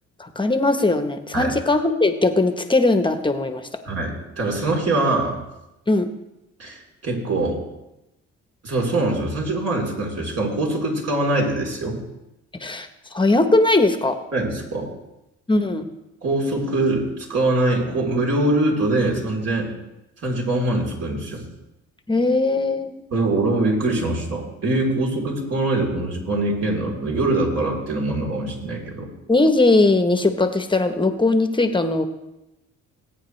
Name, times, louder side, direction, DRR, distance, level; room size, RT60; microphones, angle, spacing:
voice 1, 0.2-3.7 5.9-6.1 12.6-14.2 15.5-15.9 22.1-23.0 29.3-32.1, left 2 dB, 15° left, 8 dB, 1.1 m, -19 dB
voice 2, 3.9-5.4 6.6-7.6 8.6-12.0 14.3-14.9 16.2-19.7 20.2-21.4 23.1-29.1, right 2 dB, 55° right, -1 dB, 3.7 m, -23 dB
19.5 x 8.8 x 3.3 m, 0.94 s
cardioid pair, 90°, 30 cm